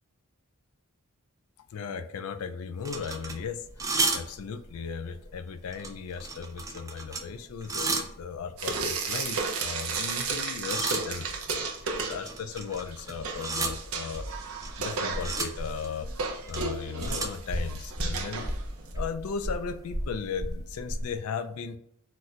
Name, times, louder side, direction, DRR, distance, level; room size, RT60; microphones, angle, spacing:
voice 1, 1.7-16.1 16.5-18.4 18.9-21.8, left 6 dB, 75° left, 10 dB, 0.3 m, -36 dB
sound 1, 2.8-4.8 5.1-5.3 5.7-8.2 8.9-10.4 10.6-21.1, right 2 dB, 15° right, 0.3 m, -34 dB
Frying (food), 8.6-12.6 12.9-18.9, right 4 dB, 70° right, 0.6 m, -34 dB
4.0 x 2.1 x 2.4 m, 0.71 s
head